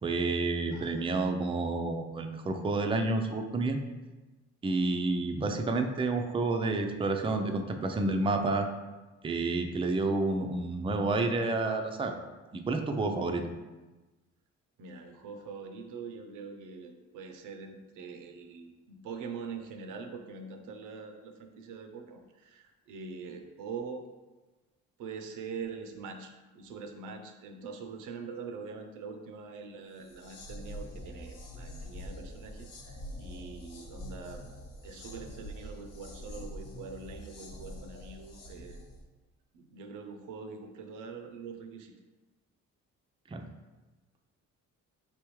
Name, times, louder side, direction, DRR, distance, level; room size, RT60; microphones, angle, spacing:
voice 1, 0.0-3.8 4.6-8.7 9.2-12.2 12.5-13.4 43.3-43.4, right 3 dB, 20° right, 5 dB, 0.4 m, -29 dB
voice 2, 0.7-1.0 14.8-24.1 25.0-34.4 34.8-38.8 39.5-41.9, right 5 dB, 85° right, 5 dB, 0.6 m, -43 dB
sound 1, 30.0-39.0, equal, 55° left, 0.9 m, -45 dB
4.6 x 3.4 x 3.0 m, 1.2 s
cardioid pair, 90°, 30 cm